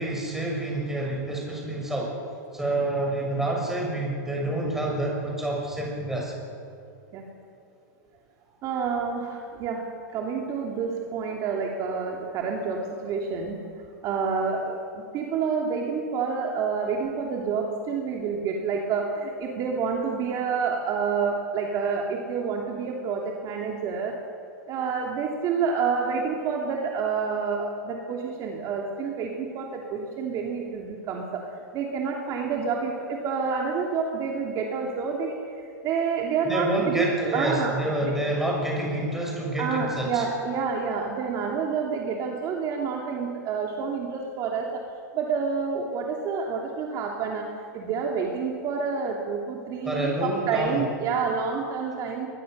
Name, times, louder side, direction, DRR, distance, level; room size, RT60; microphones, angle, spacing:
voice 1, 0.0-2.1 2.5-6.3 36.4-40.2 49.8-50.8, right 1 dB, 5° right, -2 dB, 6.8 m, -28 dB
voice 2, 8.6-13.6 14.0-24.1 24.7-31.5 31.7-37.7 38.0-38.2 39.6-44.8 45.1-52.3, right 5 dB, 35° right, 0 dB, 2.9 m, -28 dB
23.0 x 20.5 x 6.8 m, 2.5 s
hypercardioid pair, 135°, 10 cm